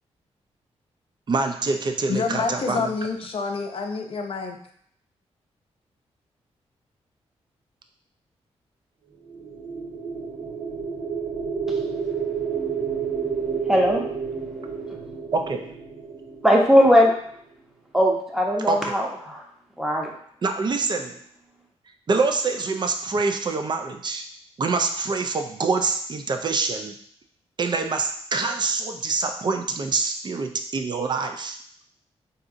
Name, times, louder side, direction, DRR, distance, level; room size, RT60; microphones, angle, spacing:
voice 1, 1.3-2.9 15.3-15.7 18.7-19.0 20.4-21.2 22.1-24.3 24.6-26.9 27.6-31.6, right 4 dB, 40° right, 5 dB, 0.4 m, -25 dB
voice 2, 2.1-4.6, left 4 dB, 55° left, 3 dB, 0.5 m, -27 dB
sound 1, 9.3-17.4, right 6 dB, 80° right, 1.4 m, -30 dB
voice 3, 13.7-14.0 16.4-17.1 17.9-19.4 19.8-20.1, equal, 5° right, -1 dB, 0.8 m, -18 dB
3.7 x 2.8 x 2.5 m, 0.63 s
cardioid pair, 75°, 11 cm